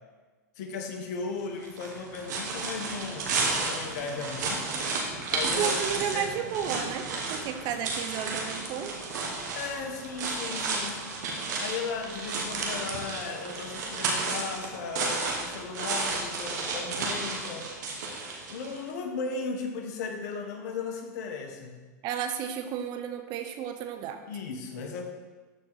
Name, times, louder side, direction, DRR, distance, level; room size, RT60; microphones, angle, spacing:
voice 1, 0.6-4.7 5.3-6.3 9.5-11.0 11.6-17.7 18.5-21.8 24.3-25.1, left 4 dB, 65° left, 4 dB, 1.3 m, -36 dB
sound 1, 1.6-18.8, right 3 dB, 75° right, 1.8 m, -32 dB
voice 2, 5.6-9.0 22.0-24.2, right 8 dB, 45° right, 7 dB, 0.9 m, -32 dB
13.0 x 4.4 x 4.1 m, 1.3 s
hypercardioid pair, 105°, 10 cm